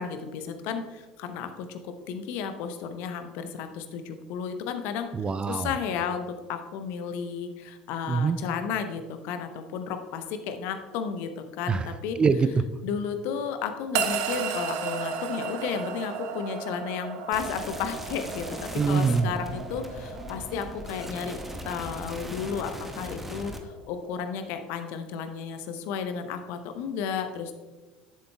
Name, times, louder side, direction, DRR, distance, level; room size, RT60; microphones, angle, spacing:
voice 1, 0.0-5.1 5.5-12.2 12.8-18.5 18.9-21.4 21.6-27.6, left 7 dB, 55° left, 8 dB, 0.8 m, -33 dB
voice 2, 5.1-5.7 8.1-8.4 11.7-11.9 12.2-12.6 18.8-19.3, right 5 dB, 25° right, 13 dB, 0.4 m, -24 dB
sound 1, 13.9-24.3, right 6 dB, 60° right, 0.7 m, -35 dB
sound 2, 17.3-23.6, equal, 5° right, 1.0 m, -39 dB
10.5 x 7.6 x 2.3 m, 1.3 s
figure-of-eight pair, 65°, 4 cm